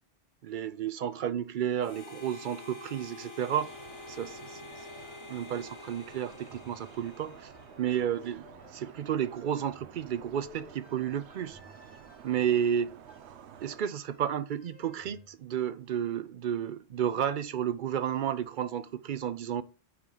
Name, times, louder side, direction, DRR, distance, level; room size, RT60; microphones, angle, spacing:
voice 1, 0.4-3.7 4.1-4.6 5.3-7.5 7.8-11.6 12.2-12.9 13.6-19.6, right 9 dB, 60° right, 0.6 m, -32 dB
Harmonica, 1.8-8.2, left 3 dB, 30° left, 0.6 m, -48 dB
sound 1, 3.6-13.8, right 8 dB, 80° right, 0.9 m, -52 dB
sound 2, 4.7-15.4, left 2 dB, 10° left, 1.1 m, -58 dB
9.3 x 3.1 x 3.8 m
omnidirectional pair, 1.1 m